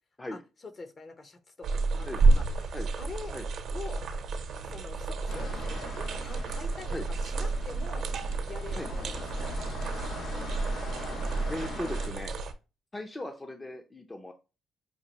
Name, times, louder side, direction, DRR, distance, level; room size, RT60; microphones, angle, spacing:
voice 1, 0.3-3.4 3.7-4.0 4.6-8.1 8.5-9.7, left 3 dB, 40° left, 9 dB, 0.9 m, -45 dB
sound 1, 1.6-12.5, right 3 dB, 65° right, 0.8 m, -30 dB
sound 2, 5.3-12.1, left 2 dB, 75° left, 2.0 m, -42 dB
voice 2, 11.5-12.3 12.9-14.3, left 1 dB, 20° left, 4 dB, 0.6 m, -38 dB
5.7 x 2.5 x 2.9 m, 0.30 s
cardioid pair, 90°, 0 cm